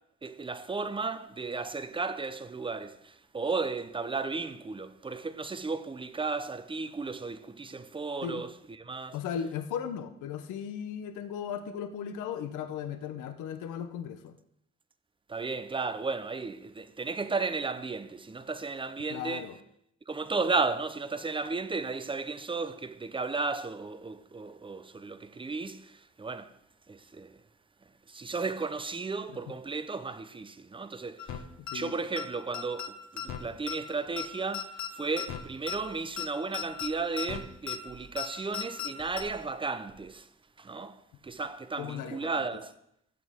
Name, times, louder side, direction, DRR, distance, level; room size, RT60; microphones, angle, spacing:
voice 1, 0.2-8.5 8.8-9.2 15.3-19.5 20.1-26.5 26.9-27.4 28.1-31.4 31.7-40.3 40.6-42.7, right 4 dB, 15° right, 0.6 m, -34 dB
voice 2, 9.1-14.4 19.1-19.6 29.3-29.4 31.7-31.9 41.8-42.5, left 8 dB, 85° left, 0.8 m, -37 dB
sound 1, 31.2-31.4 31.7-31.8 32.2-32.3 32.5-32.9 33.2-33.4 33.7-33.8 34.2-34.3 34.5-34.9 35.2-35.4 35.7-35.8 36.2-36.3 36.5-36.9 37.2-37.4 37.7-37.8 38.2-38.3 38.5-38.9 39.2-39.3, left 10 dB, 65° left, 1.2 m, -35 dB
14.5 x 6.3 x 3.6 m
cardioid pair, 90°, 30 cm